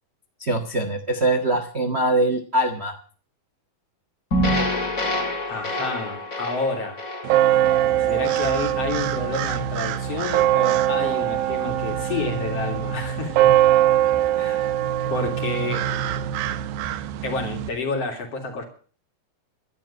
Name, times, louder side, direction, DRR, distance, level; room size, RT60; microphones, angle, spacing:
voice 1, 0.4-3.0, right 1 dB, 60° right, 6 dB, 0.6 m, -23 dB
sound 1, 4.3-8.6, left 1 dB, 25° left, 2.9 m, -27 dB
voice 2, 5.5-7.0 8.0-13.6 14.4-14.7 15.1-15.9 17.2-18.6, left 3 dB, 45° left, 4 dB, 3.9 m, -29 dB
sound 2, 7.2-17.7, right 12 dB, 80° right, 2.7 m, -22 dB
12.0 x 11.5 x 8.5 m, 0.43 s
omnidirectional pair, 4.1 m